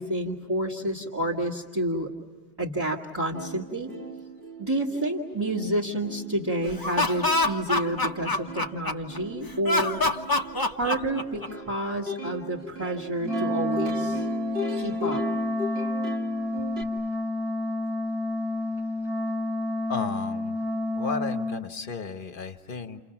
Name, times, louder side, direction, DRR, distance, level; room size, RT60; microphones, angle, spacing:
voice 1, 0.0-2.1 2.6-3.9 4.6-10.0 10.7-14.2 14.8-15.2, right 1 dB, 20° right, -7 dB, 2.1 m, -29 dB
Plucked string instrument, 3.0-3.1 3.3-16.8, right 1 dB, 70° right, 2.0 m, -38 dB
Laughter, 6.7-9.2 9.6-11.7, left 2 dB, 20° left, 1.1 m, -25 dB
Wind instrument woodwind instrument, 13.2-21.6, left 2 dB, 5° right, 1.3 m, -29 dB
voice 2, 19.9-20.6 20.9-23.0, left 4 dB, 55° left, 8 dB, 1.3 m, -33 dB
29.5 x 29.5 x 5.9 m, 1.2 s
omnidirectional pair, 1.1 m